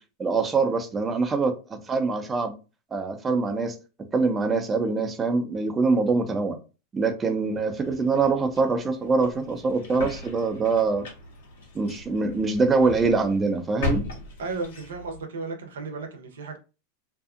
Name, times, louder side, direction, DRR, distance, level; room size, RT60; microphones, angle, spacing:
voice 1, 0.2-2.5 2.9-3.8 4.1-6.6 6.9-11.1 11.7-14.0, right 4 dB, 20° right, 0.5 m, -24 dB
sound 1, 7.7-15.2, left 3 dB, 80° left, 1.2 m, -37 dB
voice 2, 14.4-16.6, right 3 dB, 85° right, 0.7 m, -34 dB
2.6 x 2.4 x 2.4 m
hypercardioid pair, 110°, 0 cm